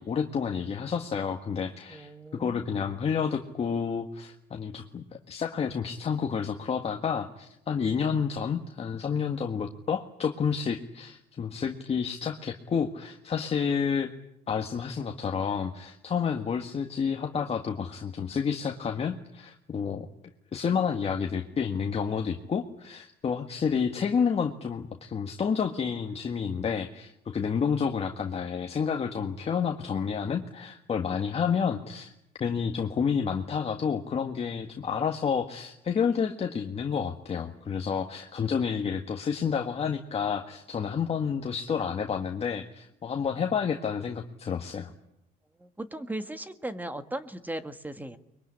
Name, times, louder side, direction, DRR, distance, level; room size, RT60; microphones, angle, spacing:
voice 1, 0.0-14.1 14.5-20.1 20.5-32.1 32.4-44.9, left 6 dB, 35° left, 4 dB, 1.7 m, -30 dB
voice 2, 1.9-2.7 45.6-48.2, right 1 dB, 10° right, 10 dB, 1.7 m, -37 dB
23.5 x 22.5 x 10.0 m, 0.80 s
cardioid pair, 110°, 17 cm